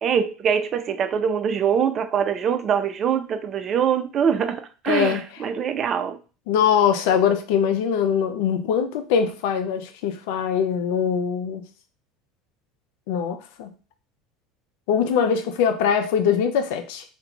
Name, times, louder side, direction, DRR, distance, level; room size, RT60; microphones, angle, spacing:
voice 1, 0.0-6.2, right 7 dB, 45° right, 0.3 m, -23 dB
voice 2, 4.9-5.2 6.5-11.7 13.1-13.7 14.9-17.0, left 7 dB, 70° left, 0.4 m, -22 dB
2.4 x 2.1 x 2.9 m
hypercardioid pair, 75°, 0 cm